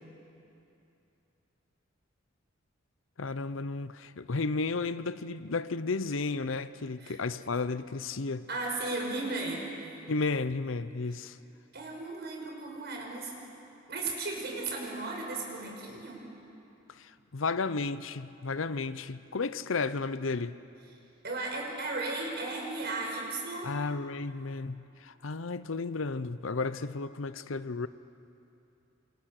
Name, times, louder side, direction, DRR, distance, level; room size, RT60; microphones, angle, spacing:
voice 1, 3.2-8.5 10.1-11.4 16.9-20.6 23.6-27.9, left 3 dB, 85° left, 0.7 m, -33 dB
voice 2, 8.5-9.7 11.7-13.3 13.9-16.2 21.2-23.7, right 3 dB, 55° right, 5.8 m, -35 dB
28.0 x 27.5 x 6.6 m
head